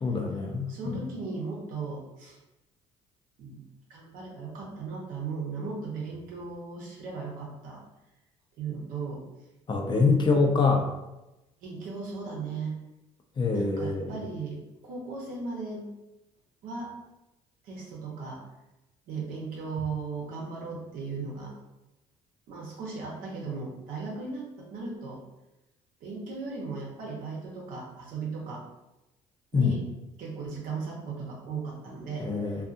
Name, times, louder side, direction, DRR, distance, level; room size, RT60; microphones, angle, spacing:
voice 1, 0.0-0.9 9.7-10.9 13.4-14.1 29.5-29.8 32.2-32.7, left 4 dB, 30° left, 2 dB, 0.5 m, -25 dB
voice 2, 0.7-2.4 3.4-3.6 3.9-7.8 8.6-9.2 9.8-10.7 11.6-12.7 13.5-15.9 16.6-16.9 17.6-18.4 19.1-21.5 22.5-25.2 26.0-28.6 29.5-29.8 30.2-32.3, right 4 dB, 70° right, -2 dB, 0.8 m, -37 dB
2.5 x 2.4 x 2.5 m, 0.97 s
supercardioid pair, 70°, 15 cm